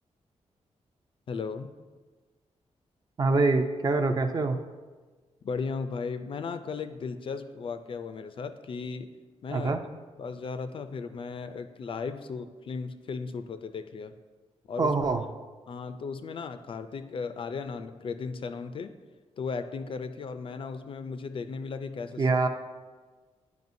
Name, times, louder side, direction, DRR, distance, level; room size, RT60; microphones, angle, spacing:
voice 1, 1.3-1.7 5.4-9.1 9.4-9.7 10.2-14.2 14.7-14.9 15.7-18.9 19.4-22.2, left 5 dB, 50° left, 9 dB, 0.3 m, -36 dB
voice 2, 3.2-4.6 9.5-9.8 14.8-15.2 22.2-22.5, right 3 dB, 35° right, 7 dB, 0.4 m, -24 dB
9.4 x 4.9 x 2.6 m, 1.3 s
wide cardioid pair, 140°, 12 cm